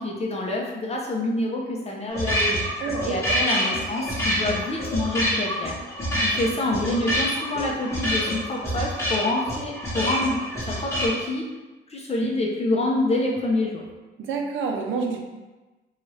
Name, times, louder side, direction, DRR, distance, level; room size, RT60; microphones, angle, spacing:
voice 1, 0.0-2.6 3.0-5.7 6.2-10.4 10.7-11.4 11.9-13.8, left 2 dB, 30° left, -2 dB, 0.5 m, -26 dB
sound 1, 2.1-11.1, equal, 15° left, 1.0 m, -27 dB
voice 2, 2.8-3.4 14.2-15.3, right 5 dB, 75° right, 2 dB, 0.5 m, -28 dB
2.6 x 2.3 x 3.2 m, 1.2 s
cardioid pair, 90°, 20 cm